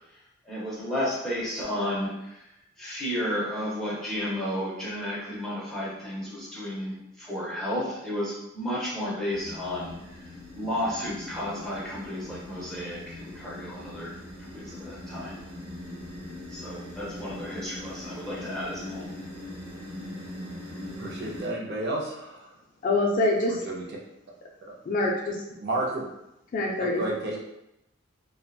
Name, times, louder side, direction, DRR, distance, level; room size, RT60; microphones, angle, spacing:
voice 1, 0.5-2.1 2.8-9.9 10.5-14.1 14.5-15.3 16.5-19.1, equal, ahead, -7 dB, 0.6 m, -32 dB
sound 1, 9.3-21.5, left 1 dB, 85° right, 0.9 m, -41 dB
voice 2, 21.0-22.5 23.5-23.8 25.6-26.1 27.0-27.4, right 1 dB, 50° right, -2 dB, 0.5 m, -31 dB
voice 3, 22.8-23.6 24.9-25.4 26.5-27.0, left 2 dB, 40° left, -1 dB, 0.3 m, -25 dB
2.7 x 2.1 x 2.3 m, 0.87 s
head